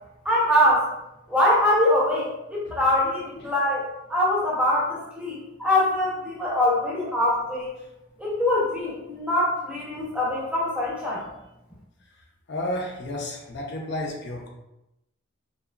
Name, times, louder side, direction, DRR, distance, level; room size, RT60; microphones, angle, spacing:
voice 1, 0.2-0.9 1.3-3.8 4.1-7.7 8.2-11.2, left 1 dB, 5° right, -5 dB, 0.6 m, -23 dB
voice 2, 12.5-14.5, left 1 dB, 55° left, 0 dB, 0.5 m, -32 dB
2.9 x 2.3 x 2.3 m, 0.89 s
head